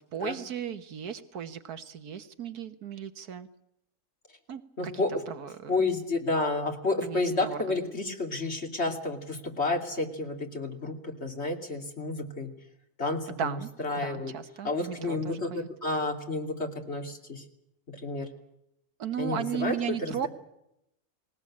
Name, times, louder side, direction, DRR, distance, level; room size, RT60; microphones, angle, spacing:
voice 1, 0.1-3.5 4.5-5.8 7.0-7.9 13.3-13.7 14.0-15.7 19.0-20.3, right 8 dB, 80° right, 10 dB, 1.7 m, -36 dB
voice 2, 4.8-5.2 5.7-12.5 13.0-14.3 14.6-17.4 18.0-18.3 19.2-20.3, left 3 dB, 45° left, 4 dB, 3.0 m, -31 dB
20.5 x 19.0 x 8.6 m, 0.81 s
omnidirectional pair, 1.6 m